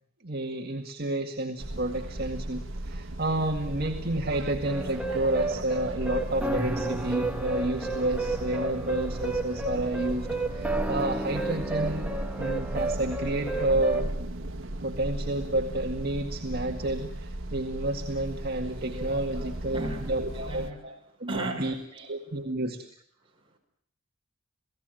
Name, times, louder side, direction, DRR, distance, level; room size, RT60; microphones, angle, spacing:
voice 1, 0.2-12.1 12.4-14.1 14.8-20.7 21.2-21.3 21.6-21.7 22.1-22.8, right 1 dB, 50° right, 1 dB, 2.0 m, -30 dB
sound 1, 1.6-20.7, right 1 dB, 80° right, 1.4 m, -36 dB
sound 2, 4.7-14.1, right 2 dB, 5° right, 1.7 m, -32 dB
voice 2, 18.6-22.1 22.4-22.5 23.2-23.6, right 1 dB, 25° right, 0 dB, 5.2 m, -38 dB
28.5 x 18.0 x 9.2 m, 0.66 s
head